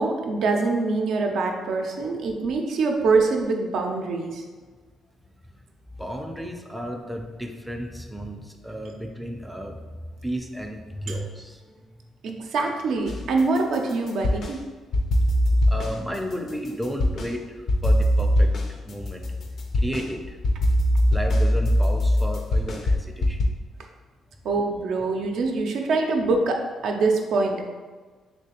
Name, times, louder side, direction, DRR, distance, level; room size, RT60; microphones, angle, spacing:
voice 1, 0.0-4.4 11.1-11.2 12.2-14.6 24.4-27.7, right 3 dB, 75° right, 2 dB, 0.4 m, -24 dB
voice 2, 6.0-9.8 10.2-11.9 15.7-19.4 19.7-20.4 21.1-23.4, equal, 5° right, 3 dB, 0.4 m, -33 dB
sound 1, 13.1-14.6 14.9-17.3 17.7-23.4, equal, 60° left, 0.5 m, -22 dB
3.3 x 3.0 x 2.8 m, 1.4 s
cardioid pair, 90°, 0 cm